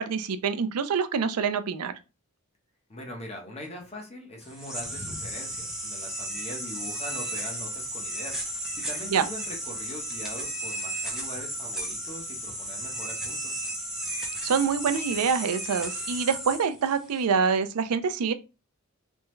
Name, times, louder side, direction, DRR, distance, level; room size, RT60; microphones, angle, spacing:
voice 1, 0.0-1.9 9.1-9.2 14.4-18.3, right 6 dB, 90° right, 0.4 m, -26 dB
voice 2, 2.9-13.7, left 1 dB, 30° left, 0.9 m, -42 dB
sound 1, 4.4-17.2, right 1 dB, ahead, 0.5 m, -34 dB
3.4 x 2.2 x 3.0 m
head